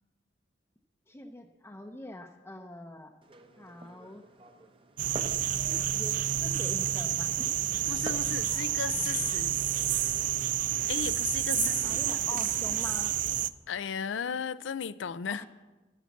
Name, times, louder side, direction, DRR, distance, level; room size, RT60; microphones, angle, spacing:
voice 1, 1.1-3.1 3.6-4.2 5.9-7.5 11.5-13.2 15.3-15.5, left 1 dB, 15° left, 0.6 m, -44 dB
Glass, 3.2-8.3, right 2 dB, 30° right, 0.8 m, -48 dB
sound 1, 5.0-13.5, right 11 dB, 45° right, 0.4 m, -29 dB
voice 2, 7.9-9.6 10.9-12.0 12.3-12.4 13.7-15.4, left 7 dB, 85° left, 0.5 m, -35 dB
12.5 x 10.0 x 7.1 m
head